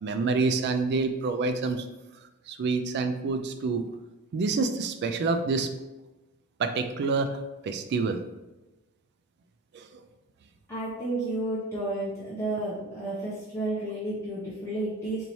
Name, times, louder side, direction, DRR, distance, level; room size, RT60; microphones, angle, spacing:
voice 1, 0.0-1.9 2.5-3.8 4.3-5.7 6.6-8.2 9.7-9.9, right 4 dB, 50° right, 8 dB, 0.3 m, -27 dB
voice 2, 10.7-15.3, right 2 dB, 15° left, -10 dB, 0.8 m, -31 dB
4.3 x 2.7 x 3.0 m, 1.1 s
head